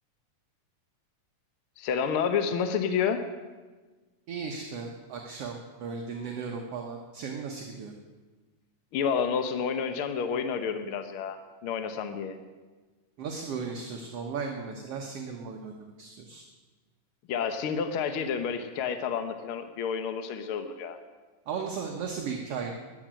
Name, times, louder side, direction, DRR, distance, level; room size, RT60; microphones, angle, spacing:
voice 1, 1.8-3.2 8.9-12.4 17.3-21.0, left 6 dB, 80° left, 9 dB, 1.2 m, -29 dB
voice 2, 4.3-7.9 13.2-16.4 21.5-22.7, right 5 dB, 60° right, 2 dB, 1.9 m, -36 dB
14.0 x 10.5 x 8.9 m, 1.3 s
omnidirectional pair, 3.8 m